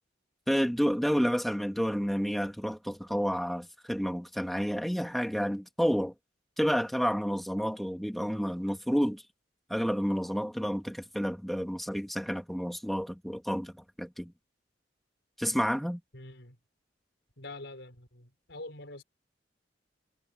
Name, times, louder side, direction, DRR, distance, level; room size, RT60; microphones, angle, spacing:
voice 1, 0.5-6.1 6.6-9.2 9.7-13.7 14.0-14.3 15.4-16.0, equal, ahead, 2.4 m, -30 dB
voice 2, 16.1-16.6 17.4-19.0, left 2 dB, 70° left, 6.1 m, -45 dB
head